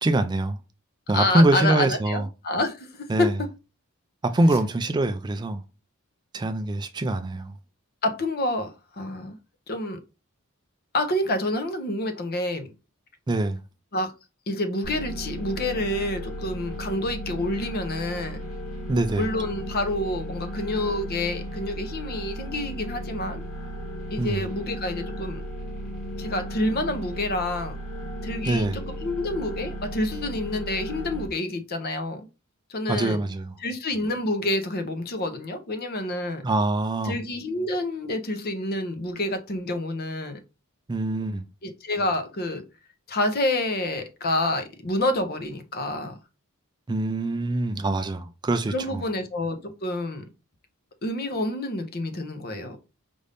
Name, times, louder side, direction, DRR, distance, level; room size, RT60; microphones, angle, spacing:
voice 1, 0.0-0.6 1.1-2.3 3.1-3.3 4.3-5.6 6.3-7.5 13.3-13.6 18.9-19.3 24.2-24.5 28.5-28.8 32.9-33.6 36.4-37.2 40.9-41.4 46.9-49.0, right 2 dB, 20° right, 0.3 m, -24 dB
voice 2, 1.1-3.5 8.0-8.7 9.0-9.4 9.7-10.0 10.9-12.7 13.9-14.1 14.5-18.4 19.1-23.4 24.1-25.4 26.2-27.8 28.2-32.2 32.7-33.2 33.6-36.4 37.0-40.4 41.6-42.6 43.1-46.2 48.7-50.2 51.0-52.8, left 1 dB, 45° left, 0.7 m, -28 dB
sound 1, 14.8-31.3, equal, 65° left, 1.8 m, -35 dB
5.2 x 2.6 x 3.4 m
head